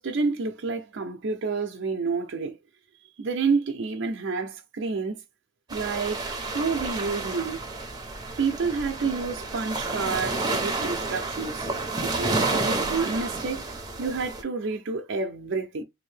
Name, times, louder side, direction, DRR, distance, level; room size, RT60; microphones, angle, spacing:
voice 1, 0.0-2.5 3.2-5.2 5.7-7.6 8.4-11.7 12.0-13.6 14.0-15.8, right 4 dB, 70° right, 0.5 m, -29 dB
sound 1, 5.7-14.4, right 3 dB, 20° right, 0.6 m, -30 dB
2.7 x 2.5 x 3.2 m
head